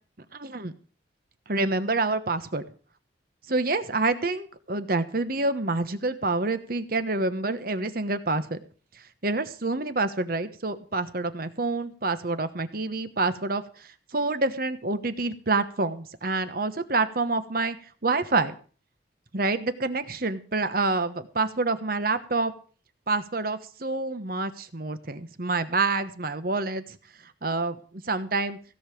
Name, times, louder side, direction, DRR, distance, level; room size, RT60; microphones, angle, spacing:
voice 1, 0.3-0.7 1.5-2.6 3.5-8.6 9.2-17.8 18.0-18.5 19.3-22.5 23.1-27.0 27.4-28.6, right 3 dB, 50° right, 11 dB, 1.2 m, -27 dB
16.5 x 5.6 x 8.5 m, 0.40 s
head